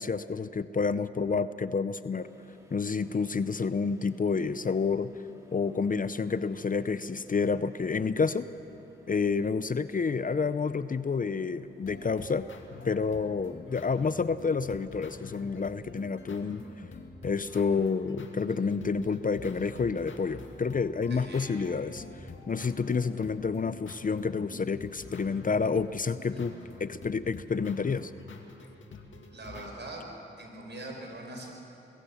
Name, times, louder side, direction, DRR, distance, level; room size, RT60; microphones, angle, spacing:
voice 1, 0.0-2.3 2.7-5.1 5.5-8.5 9.1-12.5 12.8-16.6 17.2-22.0 22.5-28.1, left 5 dB, 40° left, 14 dB, 0.6 m, -29 dB
sound 1, 2.2-15.7, equal, 15° right, 3.4 m, -58 dB
sound 2, 11.8-29.7, left 3 dB, 65° left, 2.2 m, -47 dB
voice 2, 21.1-21.6 26.3-26.4 29.3-30.0 30.4-31.5, right 2 dB, 55° right, 1 dB, 5.0 m, -42 dB
22.5 x 16.0 x 7.1 m, 2.9 s
cardioid pair, 55°, 21 cm